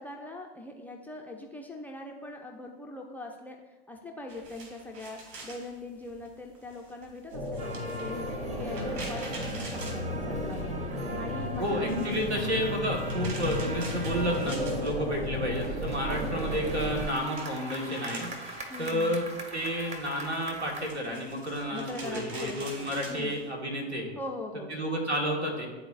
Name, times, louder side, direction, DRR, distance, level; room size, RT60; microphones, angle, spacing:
voice 1, 0.0-3.6 3.9-11.9 14.7-15.0 16.1-16.3 18.7-19.2 21.7-23.4 24.2-24.7, left 2 dB, 5° left, -1 dB, 0.3 m, -42 dB
sound 1, 4.3-10.8 11.1-15.5 15.8-23.4, right 2 dB, 45° right, 2.0 m, -46 dB
sound 2, 7.3-17.0, left 1 dB, 70° right, 1.6 m, -34 dB
sound 3, 7.6-20.9, right 1 dB, 20° right, 1.0 m, -42 dB
voice 2, 11.6-18.3 18.8-19.2 19.5-24.1 24.7-25.7, equal, 90° right, 0 dB, 1.6 m, -31 dB
11.5 x 4.0 x 2.4 m, 1.2 s
figure-of-eight pair, 95°, 33 cm